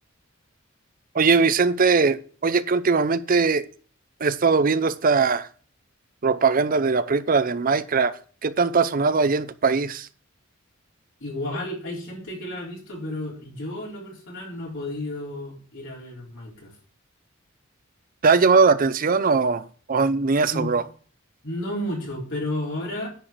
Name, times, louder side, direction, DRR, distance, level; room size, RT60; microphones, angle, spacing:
voice 1, 1.1-3.7 4.2-5.5 6.2-10.1 18.2-20.8, right 4 dB, 40° right, 0.6 m, -20 dB
voice 2, 11.2-16.7 20.5-20.7 21.4-23.1, left 1 dB, 65° left, 3.9 m, -32 dB
10.5 x 4.9 x 7.6 m
head